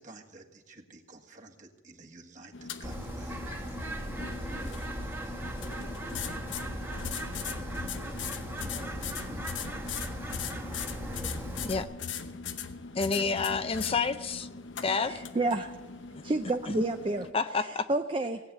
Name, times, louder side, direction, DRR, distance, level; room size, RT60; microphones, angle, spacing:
voice 1, 0.0-3.8, right 3 dB, 45° right, 2 dB, 1.6 m, -52 dB
sound 1, 2.5-17.3, left 6 dB, 90° left, 0.9 m, -40 dB
Bird, 2.8-11.8, right 1 dB, 15° right, 1.2 m, -38 dB
voice 2, 13.0-14.5 14.8-15.2 16.7-16.8 17.3-17.9, left 4 dB, 30° left, 11 dB, 0.5 m, -29 dB
voice 3, 15.1-15.7 16.2-17.3 17.9-18.4, right 2 dB, 30° right, 6 dB, 0.6 m, -29 dB
17.5 x 8.7 x 8.0 m, 1.2 s
head